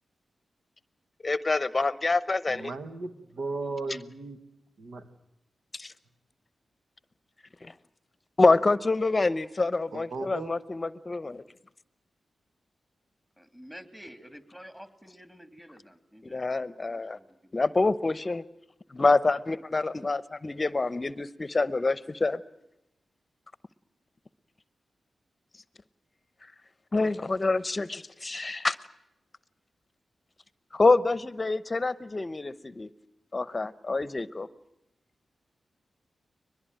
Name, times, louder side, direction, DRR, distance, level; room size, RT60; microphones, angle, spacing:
voice 1, 1.2-2.7 5.7-5.9 7.6-7.7 8.4-11.4 16.2-17.2 17.5-18.4 18.9-22.4 26.9-28.8 30.7-32.9 33.3-34.5, left 3 dB, 35° left, 0.8 m, -26 dB
voice 2, 2.5-4.4 4.8-5.1 9.9-10.5, right 3 dB, 75° right, 1.7 m, -36 dB
voice 3, 13.4-17.7, equal, 5° right, 2.9 m, -50 dB
22.5 x 20.5 x 9.1 m
cardioid pair, 55°, 0 cm